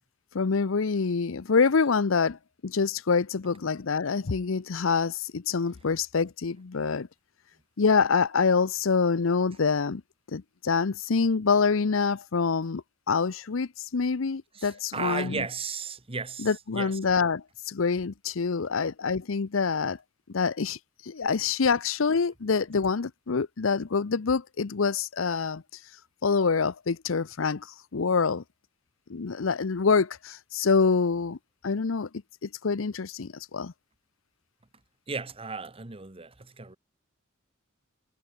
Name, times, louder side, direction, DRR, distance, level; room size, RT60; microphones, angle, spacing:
voice 1, 0.3-7.1 7.8-10.0 10.3-15.4 16.4-20.0 20.3-20.8 21.1-25.6 26.2-27.7 27.9-28.4 29.1-31.4 31.6-32.1 32.4-33.7, left 5 dB, 70° left, 0.7 m, -26 dB
voice 2, 14.5-17.0 35.1-36.8, right 4 dB, 30° right, 1.3 m, -35 dB
head